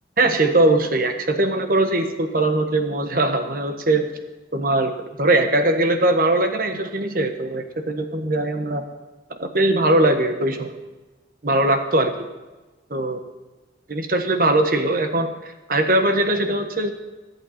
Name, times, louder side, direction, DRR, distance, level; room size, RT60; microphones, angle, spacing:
voice 1, 0.2-4.1 4.5-4.9 5.2-8.9 9.3-10.7 11.4-12.1 12.9-13.2 13.9-15.3 15.7-16.9, right 2 dB, 50° right, 6 dB, 1.3 m, -20 dB
22.5 x 8.6 x 4.3 m, 1.2 s
head